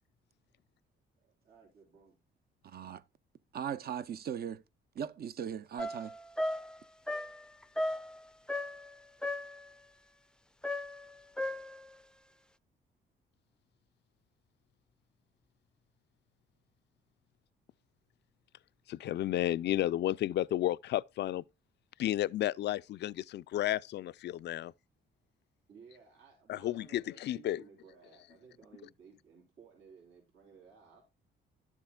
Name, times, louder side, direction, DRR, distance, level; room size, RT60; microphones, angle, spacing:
voice 1, 1.4-2.2 25.7-31.0, right 6 dB, 85° right, 3.4 m, -58 dB
voice 2, 2.6-3.0 3.5-4.6 4.9-6.2, right 8 dB, 50° right, 0.6 m, -38 dB
sound 1, 5.8-8.9 9.2-9.7 10.6-11.9, left 1 dB, 5° left, 0.5 m, -36 dB
voice 3, 18.9-21.4 22.0-24.7 26.5-27.6, left 13 dB, 60° left, 0.4 m, -32 dB
12.0 x 7.3 x 2.3 m
cardioid pair, 90°, 20 cm